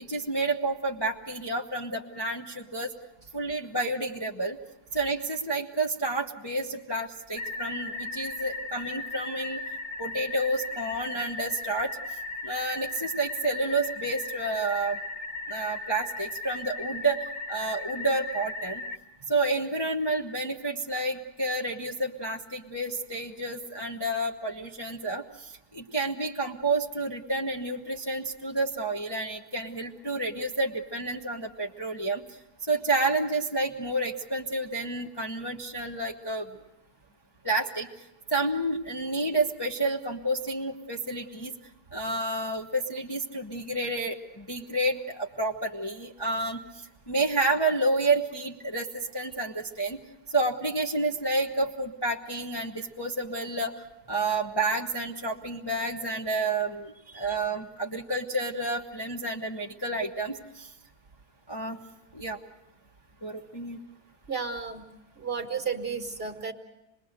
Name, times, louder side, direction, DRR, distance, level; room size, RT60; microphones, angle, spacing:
voice 1, 0.0-2.9 3.3-4.6 4.9-9.6 10.0-15.0 15.5-17.2 17.5-18.8 19.3-32.2 32.7-36.5 37.4-37.9 38.3-41.5 41.9-50.0 50.3-60.7 61.5-61.8 62.1-62.4 63.2-63.8, right 2 dB, 15° left, 0 dB, 1.0 m, -30 dB
sound 1, 7.4-19.0, left 3 dB, 40° left, 1.7 m, -37 dB
voice 2, 64.3-64.9 65.2-66.5, right 5 dB, 35° right, 4 dB, 1.6 m, -32 dB
26.5 x 21.0 x 6.6 m, 0.95 s
omnidirectional pair, 1.8 m